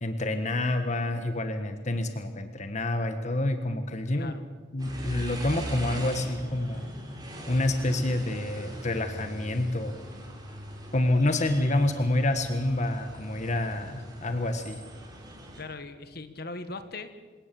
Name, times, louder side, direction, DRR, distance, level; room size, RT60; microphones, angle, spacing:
voice 1, 0.0-4.3 4.7-6.9 7.5-10.0 10.9-14.8, left 1 dB, 40° left, 8 dB, 1.4 m, -28 dB
voice 2, 4.1-4.5 15.6-17.1, left 3 dB, 55° left, 10 dB, 1.6 m, -39 dB
sound 1, 4.8-15.6, equal, 20° right, 5.1 m, -41 dB
27.0 x 18.0 x 7.6 m, 1.4 s
head